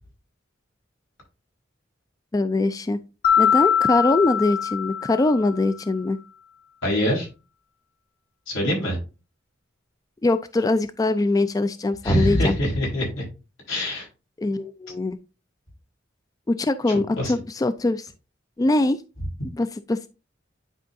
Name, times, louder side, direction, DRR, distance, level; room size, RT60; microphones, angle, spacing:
voice 1, 2.3-3.0 3.4-6.2 10.2-12.6 14.4-15.2 16.5-18.1 18.6-19.0 19.4-20.1, left 2 dB, 20° left, 0.3 m, -22 dB
Mallet percussion, 3.2-5.6, left 8 dB, 50° left, 1.5 m, -22 dB
voice 2, 6.8-7.3 8.5-9.0 12.0-13.2 13.7-14.1 17.2-17.3, equal, 90° left, 4.3 m, -23 dB
9.9 x 4.6 x 2.6 m
head